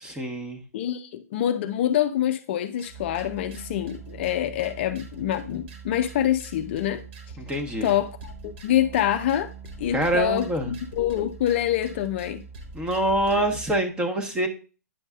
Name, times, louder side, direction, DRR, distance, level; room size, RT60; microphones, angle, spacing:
voice 1, 0.2-0.6 7.4-7.9 9.9-10.7 12.7-14.5, right 1 dB, 10° right, 1.0 m, -25 dB
voice 2, 0.7-7.0 7.8-9.5 9.8-12.4, left 11 dB, 45° left, 0.5 m, -26 dB
sound 1, 2.8-13.8, right 5 dB, 45° right, 1.7 m, -42 dB
9.2 x 5.2 x 2.4 m
hypercardioid pair, 125°, 9 cm